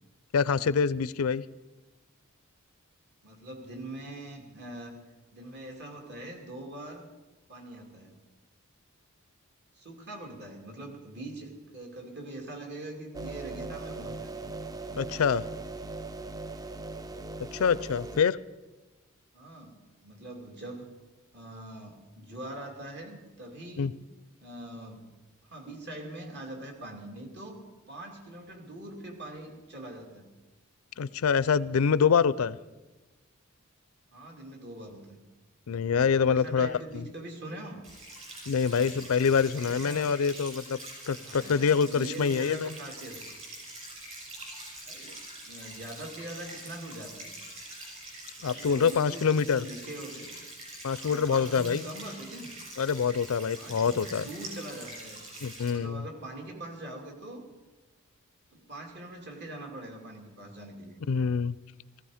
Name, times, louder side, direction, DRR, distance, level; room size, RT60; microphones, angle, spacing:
voice 1, 0.3-1.4 15.0-15.4 17.5-18.4 23.8-23.9 31.0-32.6 35.7-37.0 38.5-40.8 41.1-42.7 48.4-49.6 50.8-51.8 52.8-54.3 55.4-56.0 61.1-61.5, left 6 dB, 75° left, 19 dB, 0.4 m, -25 dB
voice 2, 3.2-5.0 5.3-7.0 7.5-8.2 9.7-14.4 19.3-20.9 21.3-24.0 24.4-25.1 25.4-30.2 34.1-35.2 36.0-37.9 38.4-38.9 39.5-40.1 41.1-43.2 44.8-47.3 48.4-50.3 51.0-52.6 53.5-55.2 55.7-57.5 58.5-61.0, right 1 dB, 55° right, 2 dB, 2.6 m, -43 dB
sound 1, 13.1-18.2, right 2 dB, 15° right, 0.4 m, -39 dB
sound 2, 37.8-55.7, right 1 dB, 35° right, 6.9 m, -44 dB
17.0 x 15.5 x 5.0 m, 1.2 s
head